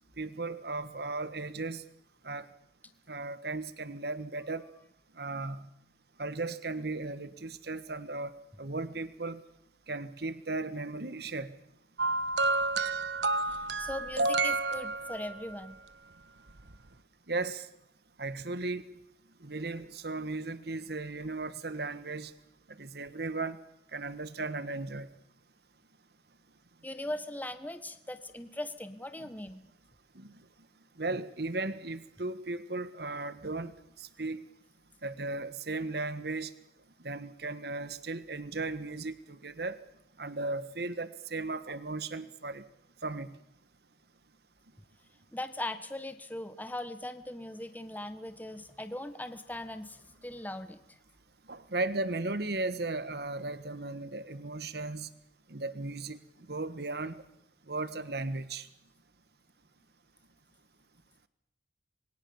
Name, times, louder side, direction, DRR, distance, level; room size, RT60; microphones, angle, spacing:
voice 1, 0.2-1.8 2.2-2.4 3.1-4.6 5.2-5.7 6.2-9.4 9.9-11.6 17.3-17.7 18.2-18.8 19.4-22.3 22.7-23.6 23.9-25.1 29.2-29.3 30.1-30.3 31.0-33.7 34.0-34.4 35.0-36.5 37.0-39.8 40.2-42.6 43.0-43.4 51.5-55.1 55.5-56.2 56.5-57.2 57.7-58.7, right 3 dB, 65° right, 14 dB, 1.5 m, -36 dB
sound 1, 12.0-15.5 16.6-16.7, right 3 dB, 85° right, 1.3 m, -30 dB
voice 2, 13.4-15.8 26.8-29.6 45.3-51.0, left 1 dB, 10° left, 10 dB, 1.4 m, -40 dB
27.0 x 22.5 x 7.2 m, 0.79 s
head